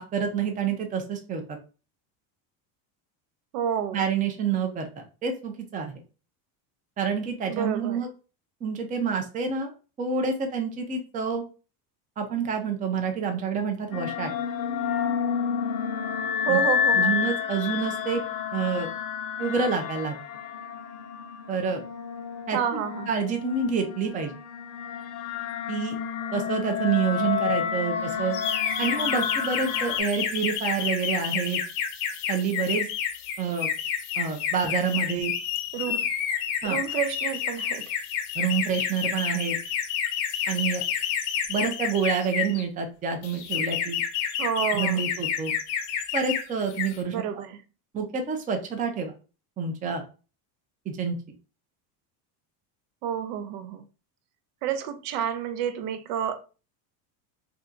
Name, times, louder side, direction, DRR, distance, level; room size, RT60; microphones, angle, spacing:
voice 1, 0.0-1.6 3.9-5.9 7.0-8.1 8.6-9.7 10.0-11.4 12.2-14.3 16.5-16.6 16.9-18.2 18.5-18.9 19.4-20.2 21.5-21.8 22.5-22.8 23.1-24.3 25.7-26.0 26.3-28.3 28.8-31.6 32.3-32.9 33.4-33.7 34.2-35.3 36.6-36.8 38.4-39.6 40.5-40.8 41.5-44.0 44.7-45.5 46.1-47.2 47.9-49.1 49.6-50.0 50.9-51.2, right 6 dB, 20° right, 0.4 m, -28 dB
voice 2, 3.5-4.0 7.5-8.0 16.5-17.1 22.5-23.3 35.7-36.1 36.6-37.9 44.4-45.1 47.1-47.6 53.0-53.8 54.6-56.4, right 9 dB, 75° right, 0.7 m, -29 dB
sound 1, 13.9-30.0, left 7 dB, 45° left, 0.5 m, -30 dB
sound 2, 28.3-42.6 43.2-46.4 46.7-47.0, left 8 dB, 80° left, 0.8 m, -29 dB
2.7 x 2.3 x 3.6 m
cardioid pair, 135°, 47 cm